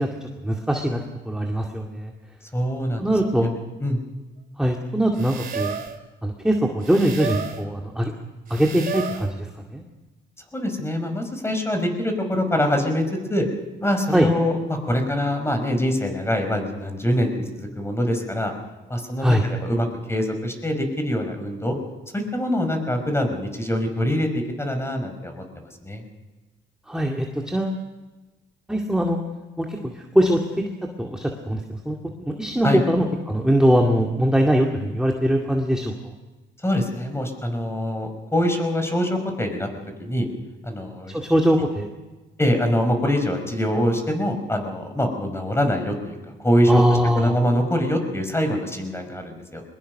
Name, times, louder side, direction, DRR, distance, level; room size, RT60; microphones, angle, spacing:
voice 1, 0.0-2.1 3.0-3.5 4.6-5.7 6.2-8.1 8.5-9.8 14.1-14.3 19.2-19.4 26.9-27.8 28.7-29.2 29.6-30.4 30.8-35.9 41.1-41.9 46.7-47.3, equal, 5° right, 1 dB, 2.2 m, -22 dB
voice 2, 2.5-3.1 3.8-4.0 10.5-13.0 13.3-13.5 13.8-18.5 18.9-21.8 22.1-26.0 32.6-32.8 36.6-39.7 40.0-40.3 40.6-41.2 42.4-46.8 47.1-49.6, equal, 10° left, 5 dB, 5.2 m, -24 dB
sound 1, 5.2-6.0 6.8-7.6 8.5-9.3, right 6 dB, 45° right, 2.8 m, -31 dB
22.0 x 21.0 x 6.6 m, 1.2 s
cardioid pair, 90°, 20 cm